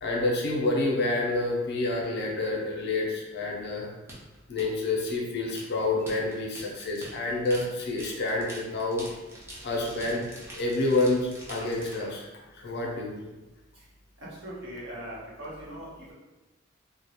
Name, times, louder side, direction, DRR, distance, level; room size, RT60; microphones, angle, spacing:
voice 1, 0.0-3.9 4.5-9.0 9.6-10.3 10.6-12.3 12.5-13.3, left 2 dB, 60° left, -1 dB, 0.5 m, -28 dB
sound 1, 4.1-12.1, right 1 dB, 15° right, 0.5 m, -45 dB
voice 2, 14.4-16.1, equal, 65° right, -7 dB, 0.9 m, -40 dB
2.3 x 2.1 x 2.8 m, 1.1 s
head